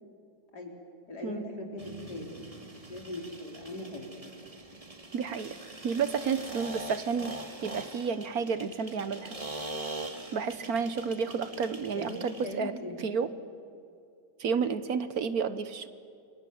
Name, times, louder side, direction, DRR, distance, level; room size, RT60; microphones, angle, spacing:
voice 1, 1.1-2.5 2.9-4.0 12.0-13.2, left 2 dB, 65° left, 1 dB, 4.6 m, -40 dB
sound 1, 1.8-12.6, right 2 dB, 20° right, 1.7 m, -43 dB
voice 2, 5.1-5.6 5.8-7.3 7.6-9.4 10.3-13.3 14.4-15.9, right 6 dB, 60° right, 13 dB, 1.4 m, -31 dB
29.5 x 24.5 x 7.8 m, 2.4 s
omnidirectional pair, 1.9 m